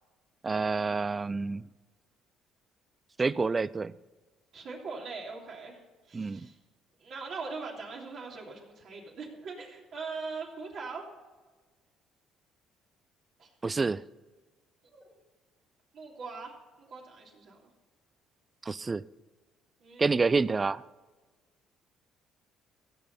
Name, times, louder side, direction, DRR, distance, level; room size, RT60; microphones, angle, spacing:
voice 1, 0.4-1.6 3.2-3.9 6.1-6.5 13.6-14.0 18.7-19.0 20.0-20.8, right 4 dB, 25° right, 0.4 m, -28 dB
voice 2, 4.5-5.8 6.1-6.5 7.0-11.0 13.4-13.5 14.9-15.2 15.9-16.5 16.8-17.6 19.8-20.3, right 4 dB, 60° right, 3.1 m, -41 dB
16.5 x 6.7 x 5.5 m
supercardioid pair, 80°, 0 cm